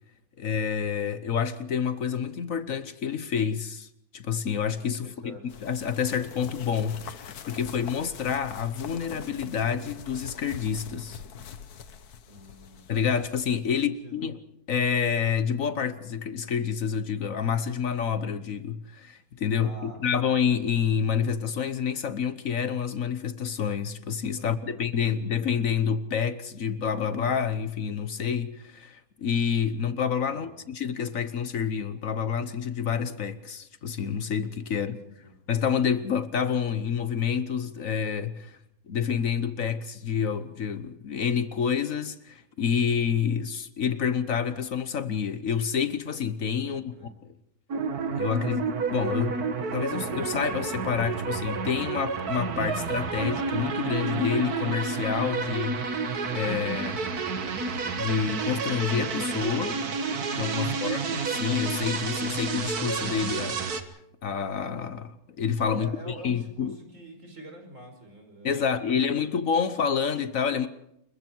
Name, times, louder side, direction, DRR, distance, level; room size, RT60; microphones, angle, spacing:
voice 1, 0.4-11.2 12.9-14.4 14.7-35.0 35.5-38.6 38.9-47.1 48.1-49.4 49.7-55.8 56.3-57.0 58.0-59.8 60.4-63.9 64.2-66.7 68.4-70.7, left 7 dB, 65° left, 1.5 m, -28 dB
voice 2, 5.0-5.5 12.2-12.9 13.7-14.2 19.6-20.4 24.4-24.9 25.3-25.5 30.3-30.6 34.8-34.9 35.2-35.4 46.6-47.1 60.5-60.9 65.7-69.4, right 1 dB, 55° right, 5.4 m, -47 dB
sound 1, 5.5-13.9, left 8 dB, 90° left, 1.6 m, -44 dB
sound 2, 47.7-63.8, right 5 dB, 85° right, 2.0 m, -30 dB
29.0 x 22.5 x 4.6 m
omnidirectional pair, 1.6 m